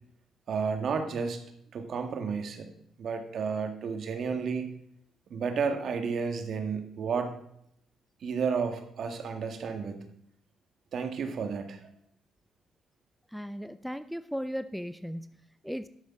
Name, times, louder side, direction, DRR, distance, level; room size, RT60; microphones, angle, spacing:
voice 1, 0.5-1.4 1.7-2.7 3.0-4.7 5.3-7.3 8.2-10.0 10.9-11.8, right 5 dB, 60° right, 6 dB, 1.7 m, -31 dB
voice 2, 13.3-15.9, equal, ahead, 13 dB, 0.4 m, -37 dB
11.5 x 6.5 x 5.9 m, 0.73 s
cardioid pair, 90°, 0 cm